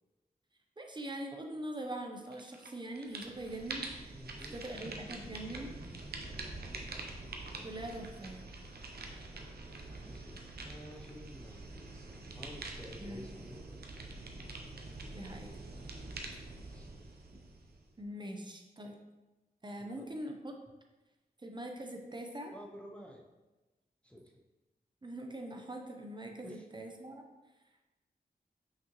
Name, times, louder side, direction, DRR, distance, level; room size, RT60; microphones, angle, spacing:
voice 1, 0.8-5.7 7.6-8.4 13.0-13.2 15.1-15.5 17.3-17.4 18.0-18.9 19.6-20.5 21.4-22.5 25.0-27.2, right 1 dB, 30° right, 2 dB, 0.7 m, -43 dB
sound 1, 2.3-2.7 3.0-18.0, right 2 dB, 80° right, 0.8 m, -45 dB
voice 2, 4.1-5.9 6.3-6.9 7.2-7.8 10.0-13.9 16.0-16.3 16.6-16.9 19.8-20.1 22.5-23.2 24.0-24.3 26.4-26.7, equal, 5° left, -1 dB, 0.6 m, -52 dB
5.9 x 5.7 x 3.0 m, 1.1 s
wide cardioid pair, 105°, 16 cm